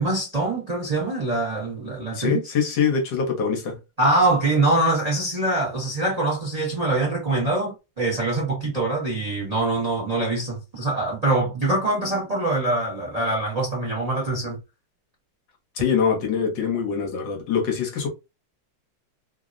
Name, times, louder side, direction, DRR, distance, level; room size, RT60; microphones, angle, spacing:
voice 1, 0.0-2.4 4.0-14.6, right 2 dB, 40° right, 0.5 m, -24 dB
voice 2, 2.1-3.8 15.7-18.1, left 6 dB, 70° left, 1.5 m, -24 dB
3.6 x 2.0 x 2.4 m
omnidirectional pair, 2.2 m